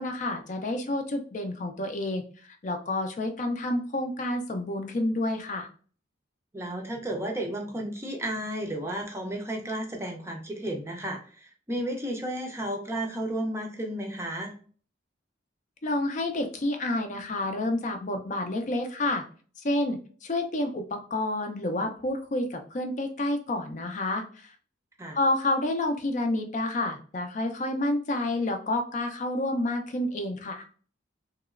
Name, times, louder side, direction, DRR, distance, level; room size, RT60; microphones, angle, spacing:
voice 1, 0.0-2.2 2.6-5.7 15.8-19.2 19.6-24.2 25.1-30.6, left 1 dB, 40° left, 5 dB, 0.5 m, -29 dB
voice 2, 6.5-14.5 25.0-25.2, right 1 dB, 15° right, 2 dB, 0.5 m, -33 dB
2.9 x 2.9 x 2.4 m, 0.41 s
head